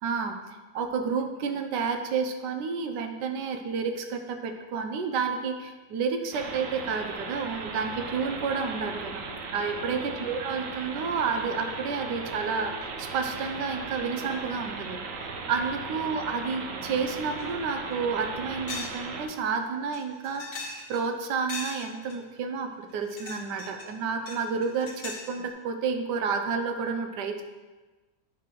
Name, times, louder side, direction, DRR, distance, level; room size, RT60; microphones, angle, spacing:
voice 1, 0.0-0.4 0.7-9.2 9.5-15.0 15.5-27.4, right 5 dB, 80° right, 6 dB, 1.3 m, -30 dB
sound 1, 6.3-19.3, right 4 dB, 60° right, 1.0 m, -37 dB
sound 2, 17.4-17.5 17.9-18.0 18.7-19.0 19.3-19.4 19.9-21.1 21.5-22.2 22.9-23.9 24.3-25.3, left 3 dB, 80° left, 2.0 m, -39 dB
9.4 x 3.3 x 6.0 m, 1.3 s
omnidirectional pair, 1.8 m